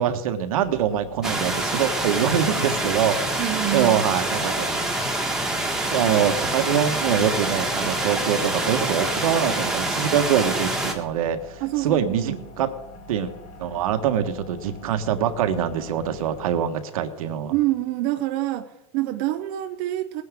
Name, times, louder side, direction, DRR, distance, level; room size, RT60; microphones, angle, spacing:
voice 1, 0.0-3.2 3.7-4.7 5.9-12.7 13.1-13.3 13.6-17.5, right 9 dB, 80° right, 7 dB, 1.5 m, -24 dB
sound 1, 0.6-16.5, equal, 65° left, 5.7 m, -45 dB
sound 2, 1.2-10.9, right 1 dB, 5° right, 1.7 m, -26 dB
voice 2, 3.4-4.1 11.6-12.4 17.5-20.2, right 15 dB, 50° right, 7 dB, 0.8 m, -26 dB
20.0 x 9.6 x 3.7 m, 0.90 s
supercardioid pair, 145°, 18 cm